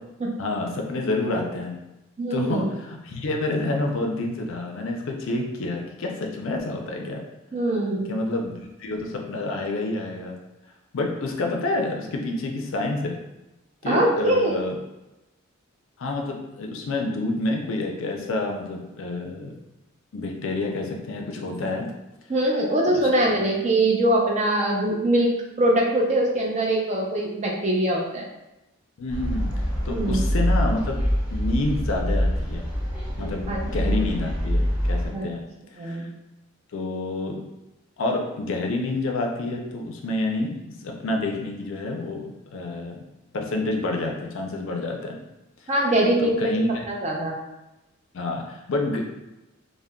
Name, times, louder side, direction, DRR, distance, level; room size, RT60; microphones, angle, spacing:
voice 1, 0.4-1.7 2.3-7.2 8.1-10.4 10.9-13.2 13.8-14.8 16.0-19.5 20.1-21.9 22.9-23.4 29.0-29.5 29.9-31.0 31.3-32.6 33.2-35.4 35.8-36.1 36.7-37.4 38.0-43.0 43.3-45.2 46.2-46.8 48.1-49.0, left 2 dB, 65° left, 2 dB, 0.4 m, -28 dB
voice 2, 2.2-2.7 7.5-8.1 13.9-14.5 22.3-25.3 25.6-28.2 29.9-30.2 33.5-34.0 35.1-35.3 35.8-36.1 45.7-46.5 46.9-47.4, right 1 dB, 35° right, -2 dB, 0.5 m, -22 dB
sound 1, 29.1-35.1, equal, 5° right, 1.2 m, -25 dB
3.5 x 2.1 x 2.2 m, 0.97 s
head